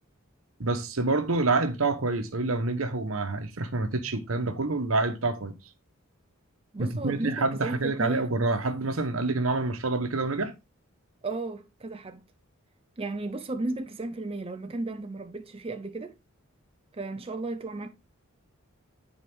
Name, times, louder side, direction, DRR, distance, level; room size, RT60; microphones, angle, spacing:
voice 1, 0.6-5.5 6.8-10.5, right 3 dB, 75° right, 1.1 m, -27 dB
voice 2, 6.7-8.2 11.2-12.2 13.0-16.1 16.9-17.9, right 2 dB, 25° right, 0.6 m, -34 dB
9.7 x 4.5 x 3.6 m
head